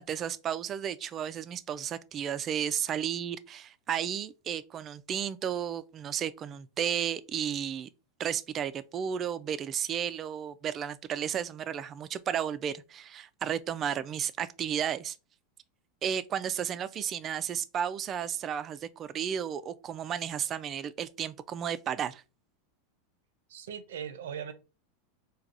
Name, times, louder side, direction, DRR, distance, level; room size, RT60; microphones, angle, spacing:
voice 1, 0.0-7.9 8.2-15.2 16.0-22.2, right 9 dB, 35° right, 0.3 m, -33 dB
voice 2, 23.5-24.5, right 8 dB, 85° right, 0.6 m, -39 dB
4.6 x 2.3 x 2.5 m
supercardioid pair, 120°, 0 cm